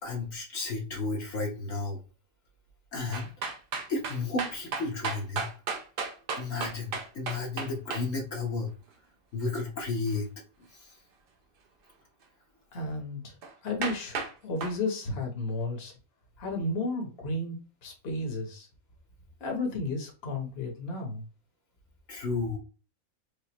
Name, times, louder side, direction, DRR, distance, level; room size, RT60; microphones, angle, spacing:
voice 1, 0.0-2.0 2.9-3.3 3.9-5.5 6.4-8.7 9.3-10.3 10.7-10.9 22.1-22.6, left 3 dB, 65° left, -2 dB, 1.4 m, -33 dB
sound 1, 3.1-8.1 13.4-13.5 13.8-14.3 14.6-14.8, right 4 dB, 55° right, 0.6 m, -33 dB
voice 2, 12.7-13.3 13.6-15.9 16.4-18.7 19.4-21.3, left 2 dB, 45° left, 0 dB, 1.3 m, -33 dB
5.0 x 2.5 x 3.0 m, 0.36 s
omnidirectional pair, 1.5 m